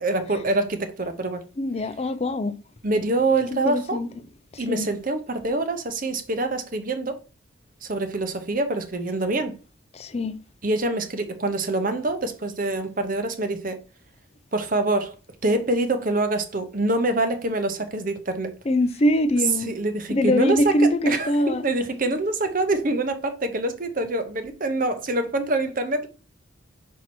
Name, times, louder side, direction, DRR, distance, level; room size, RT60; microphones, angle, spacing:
voice 1, 0.0-1.4 2.8-4.0 4.6-7.2 7.8-9.5 10.6-13.8 14.5-15.1 15.4-18.5 19.7-26.1, right 2 dB, 40° right, 0.8 m, -25 dB
voice 2, 1.6-2.5 3.5-4.1 4.5-4.9 9.9-10.4 18.7-19.7 20.1-21.6, left 1 dB, 30° left, 0.5 m, -23 dB
5.8 x 4.6 x 4.3 m
head